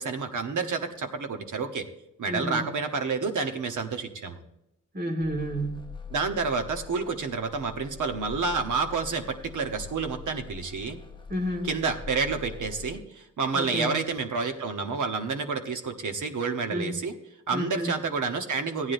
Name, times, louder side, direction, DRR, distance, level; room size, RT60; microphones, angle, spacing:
voice 1, 0.0-1.8 2.2-4.4 6.1-11.0 11.6-17.1 17.5-18.9, right 4 dB, 65° right, 6 dB, 1.1 m, -29 dB
voice 2, 2.3-2.7 4.9-5.8 11.3-11.7 13.5-14.0 16.7-16.9 17.5-17.9, equal, 30° right, 2 dB, 1.7 m, -30 dB
sound 1, 5.2-13.0, left 6 dB, 15° left, 0.6 m, -43 dB
15.5 x 9.5 x 2.6 m, 0.85 s
wide cardioid pair, 170°, 33 cm